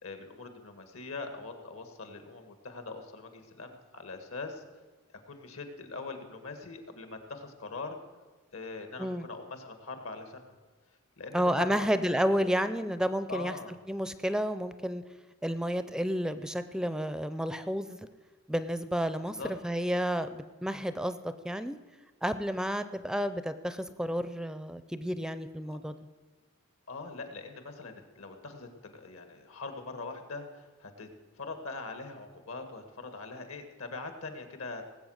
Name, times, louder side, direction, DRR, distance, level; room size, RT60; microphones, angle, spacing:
voice 1, 0.0-4.6 5.3-8.0 8.5-10.6 11.2-12.6 13.3-13.8 19.2-19.5 25.7-25.8 26.9-31.1 31.4-34.8, left 3 dB, 75° left, 7 dB, 1.7 m, -42 dB
voice 2, 11.3-13.5 13.9-15.0 15.4-18.1 18.5-21.8 22.2-25.9, equal, 5° right, 12 dB, 0.4 m, -31 dB
19.0 x 7.8 x 6.4 m, 1.3 s
head